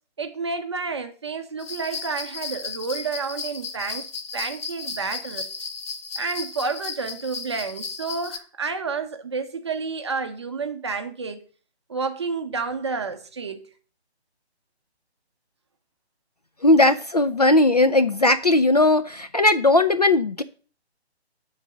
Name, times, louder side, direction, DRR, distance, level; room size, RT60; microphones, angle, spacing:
voice 1, 0.2-4.1 4.3-5.5 6.2-11.4 11.9-13.7, right 4 dB, 25° right, 0.6 m, -30 dB
sound 1, 1.6-8.4, left 4 dB, 60° left, 1.1 m, -35 dB
voice 2, 16.6-20.4, left 2 dB, 40° left, 0.4 m, -18 dB
8.0 x 4.0 x 6.1 m
figure-of-eight pair, 145°, 33 cm